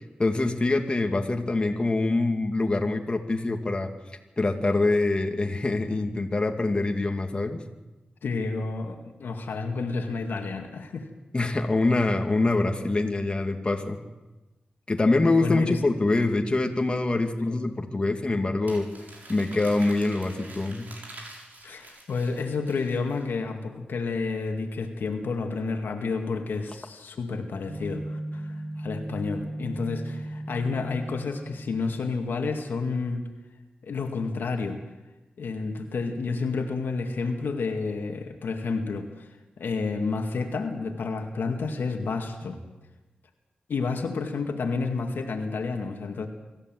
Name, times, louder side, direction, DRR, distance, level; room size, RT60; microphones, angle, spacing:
voice 1, 0.2-3.9 4.4-7.6 11.3-14.0 14.9-18.9 19.3-20.9, left 2 dB, 30° left, 3 dB, 2.3 m, -24 dB
voice 2, 8.2-11.1 15.4-15.8 17.4-17.6 21.6-33.3 33.8-34.8 35.4-42.6 43.7-46.3, left 4 dB, 85° left, 3 dB, 2.2 m, -30 dB
Crumpling crinkling, 18.7-23.2, right 2 dB, 55° right, 6.5 m, -46 dB
sound 1, 27.7-32.0, right 1 dB, 80° right, 1.9 m, -36 dB
25.0 x 14.5 x 7.8 m, 1.1 s
wide cardioid pair, 85°, 3 cm